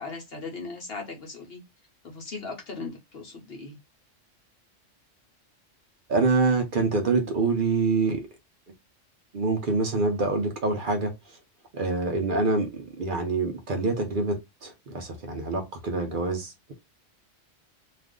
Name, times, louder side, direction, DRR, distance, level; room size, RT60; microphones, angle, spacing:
voice 1, 0.0-1.6 2.0-3.8, left 3 dB, 55° left, 0.9 m, -38 dB
voice 2, 6.1-8.2 9.3-11.1 11.7-16.7, right 3 dB, 50° right, 0.7 m, -26 dB
2.5 x 2.4 x 3.5 m
omnidirectional pair, 1.3 m